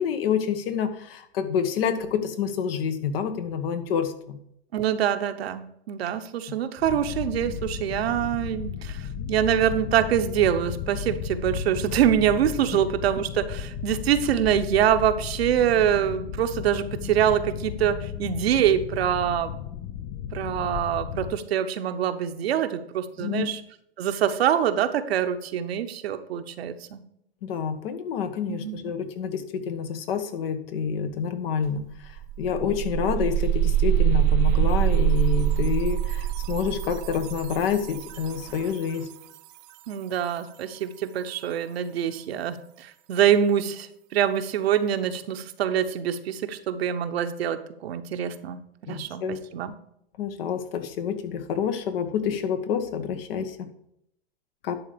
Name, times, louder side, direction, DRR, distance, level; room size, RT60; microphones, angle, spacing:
voice 1, 0.0-4.4 23.2-23.5 27.4-39.1 48.9-49.4 50.2-53.7 54.6-54.7, left 7 dB, 60° left, 8 dB, 1.4 m, -28 dB
voice 2, 4.7-19.5 20.3-23.6 24.0-27.0 28.5-28.8 39.9-49.7, right 10 dB, 70° right, 8 dB, 1.0 m, -25 dB
sound 1, 6.8-21.4, left 9 dB, 35° left, 0.5 m, -34 dB
sound 2, 31.6-31.7 32.0-38.8, right 12 dB, 40° right, 0.7 m, -24 dB
11.0 x 3.9 x 6.8 m, 0.75 s
hypercardioid pair, 120°, 32 cm